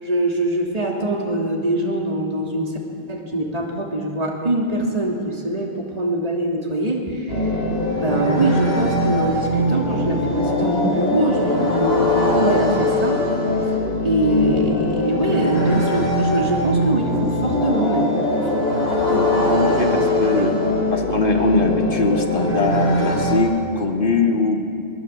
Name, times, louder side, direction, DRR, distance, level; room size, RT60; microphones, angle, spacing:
voice 1, 0.0-2.8 3.1-7.6 7.9-13.2 13.6-18.1 18.9-20.5 20.9-21.0, right 1 dB, 40° right, -1 dB, 3.0 m, -23 dB
sound 1, 7.3-23.4, left 1 dB, 85° left, 7.7 m, -21 dB
voice 2, 19.7-20.6 20.9-24.6, left 3 dB, 60° left, 1 dB, 2.4 m, -21 dB
24.0 x 19.5 x 8.2 m, 2.4 s
omnidirectional pair, 1.0 m